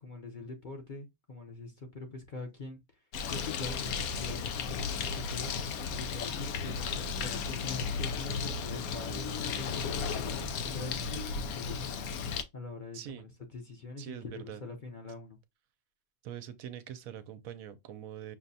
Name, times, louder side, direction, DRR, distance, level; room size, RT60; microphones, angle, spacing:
voice 1, 0.0-2.8 3.3-5.5 6.0-9.8 10.2-12.1 12.5-13.2 13.5-15.4, left 3 dB, 40° left, 0.8 m, -43 dB
Bird, 3.1-12.4, left 5 dB, 85° left, 1.1 m, -34 dB
voice 2, 12.9-13.3 14.0-14.6 16.2-18.4, right 10 dB, 75° right, 1.0 m, -43 dB
6.1 x 2.2 x 2.6 m
omnidirectional pair, 1.5 m